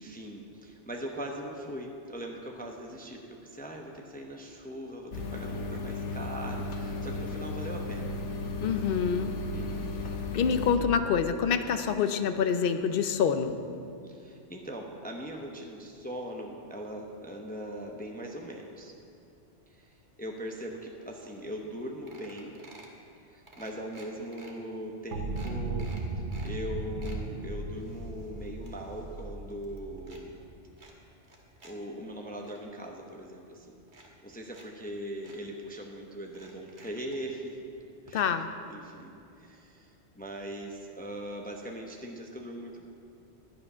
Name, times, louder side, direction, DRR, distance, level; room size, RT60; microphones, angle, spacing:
voice 1, 0.0-8.1 9.5-9.9 14.1-18.9 19.7-19.9 20.2-22.6 23.3-25.9 26.4-30.4 31.6-33.8 34.2-37.6 38.1-38.3 38.7-42.8, equal, 10° left, 1 dB, 0.8 m, -40 dB
sound 1, 5.1-10.8, left 2 dB, 85° left, 1.3 m, -35 dB
voice 2, 8.6-9.3 10.3-13.6 38.1-38.5, left 7 dB, 60° left, 9 dB, 0.8 m, -26 dB
sound 2, 21.4-21.5 21.7-21.8 22.1-23.0 23.5-24.5 25.0-25.1 25.4-26.5 26.8-27.2 27.7-29.3 29.5-30.2 30.8-31.7 32.1-32.6 33.4-33.5 33.9-34.7 34.9-35.0 35.2-35.4 36.3-37.2 38.1-38.2 38.5-38.6, right 2 dB, 45° right, 1.5 m, -53 dB
sound 3, 25.1-30.8, right 2 dB, 80° right, 1.1 m, -36 dB
11.0 x 9.6 x 5.5 m, 2.6 s
omnidirectional pair, 1.2 m